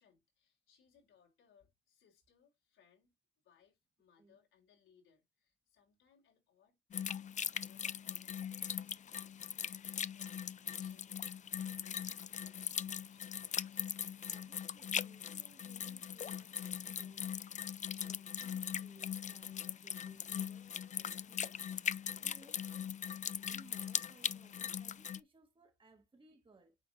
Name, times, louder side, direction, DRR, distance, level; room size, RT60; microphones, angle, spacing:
voice 1, 0.0-7.3 7.6-8.5 8.7-14.0, left 7 dB, 85° left, 4.8 m, -71 dB
sound 1, 6.9-25.2, left 8 dB, 40° left, 0.4 m, -40 dB
voice 2, 14.3-17.5 18.0-22.8 23.3-26.9, right 3 dB, 25° right, 1.6 m, -64 dB
8.6 x 4.5 x 2.8 m
cardioid pair, 90°, 20 cm